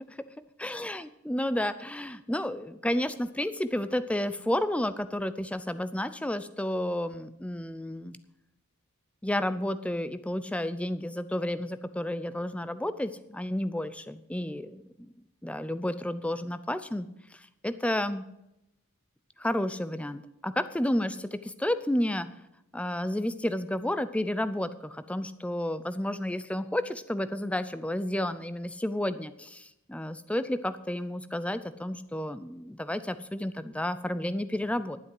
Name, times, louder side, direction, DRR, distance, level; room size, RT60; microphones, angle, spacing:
voice 1, 0.6-8.2 9.2-15.1 15.4-18.2 19.4-22.3 22.7-35.0, left 1 dB, 5° left, 12 dB, 0.5 m, -31 dB
12.0 x 7.9 x 7.6 m, 0.85 s
head